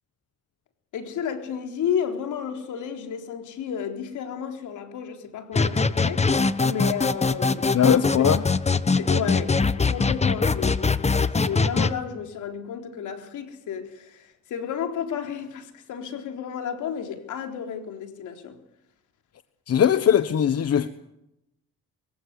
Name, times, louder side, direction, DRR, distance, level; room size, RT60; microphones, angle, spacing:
voice 1, 0.9-7.8 8.2-8.3 8.8-18.6, left 8 dB, 80° left, 3.9 m, -32 dB
sound 1, 5.5-11.9, left 4 dB, 20° left, 1.2 m, -22 dB
voice 2, 7.7-8.4 19.7-20.9, left 8 dB, 55° left, 1.2 m, -20 dB
25.0 x 15.5 x 9.6 m
cardioid pair, 90°, 30 cm